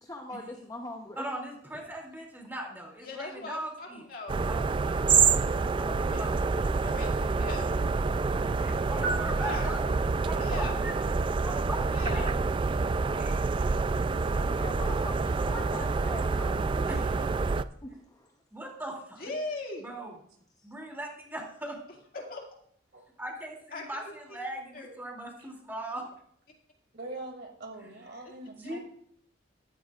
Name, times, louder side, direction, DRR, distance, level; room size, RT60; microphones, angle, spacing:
voice 1, 0.0-1.3 14.4-17.3 17.8-18.3, left 1 dB, 20° left, 1 dB, 0.8 m, -42 dB
voice 2, 1.2-4.0 4.5-5.2 5.8-6.5 8.6-9.8 10.3-10.9 11.4-12.2 13.0-13.3 14.8-14.9 16.9-17.3 18.5-19.2 19.8-20.2 20.6-21.8 23.2-26.0 28.4-28.8, right 1 dB, 10° right, 0 dB, 2.7 m, -40 dB
voice 3, 3.0-4.4 5.9-6.2 6.8-7.1 7.4-7.7 9.4-9.7 10.4-10.8 11.9-12.3 19.2-19.9 22.1-22.4 23.7-23.8 24.3-24.4 24.7-24.9, left 2 dB, 50° left, 0 dB, 2.2 m, -38 dB
sound 1, 4.3-17.6, right 4 dB, 25° right, 0.3 m, -27 dB
sound 2, 9.0-10.5, right 2 dB, 75° left, 2.1 m, -36 dB
voice 4, 26.9-28.8, right 2 dB, 55° right, 2 dB, 2.5 m, -43 dB
14.0 x 12.5 x 2.4 m, 0.65 s
head